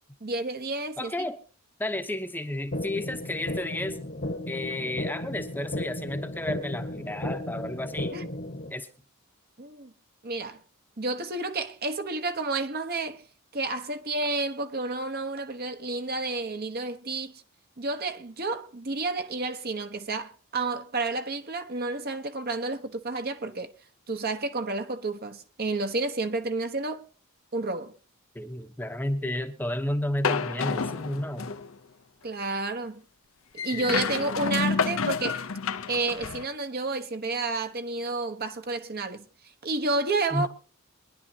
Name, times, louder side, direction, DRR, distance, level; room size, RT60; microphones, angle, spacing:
voice 1, 0.2-1.1 8.1-8.3 9.6-9.9 10.2-10.6 11.0-13.2 13.5-17.3 17.8-23.7 24.1-27.0 27.5-27.9 32.2-33.0 33.6-35.4 35.9-39.3 39.6-40.5, right 3 dB, 45° right, 1.1 m, -30 dB
voice 2, 1.0-1.4 1.8-4.0 4.5-8.2 8.7-8.9 28.3-31.5 33.7-33.8 34.2-34.3 40.3-40.5, left 1 dB, 10° left, 0.9 m, -32 dB
sound 1, 2.7-8.7, left 1 dB, 45° left, 1.3 m, -34 dB
sound 2, 30.2-31.7 33.6-36.5, left 5 dB, 65° left, 0.7 m, -29 dB
23.0 x 11.0 x 2.8 m
head